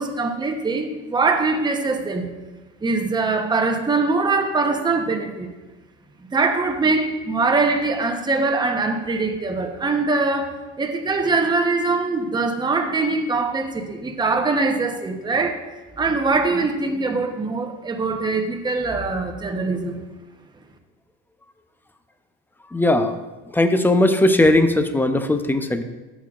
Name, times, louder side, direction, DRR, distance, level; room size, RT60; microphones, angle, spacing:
voice 1, 0.0-2.3 2.8-5.5 6.3-15.6 16.0-20.0, right 3 dB, 10° right, 0.9 m, -22 dB
voice 2, 22.7-23.2 23.5-25.8, left 1 dB, 5° left, 0.6 m, -18 dB
13.5 x 5.7 x 2.5 m
supercardioid pair, 105°, 35 cm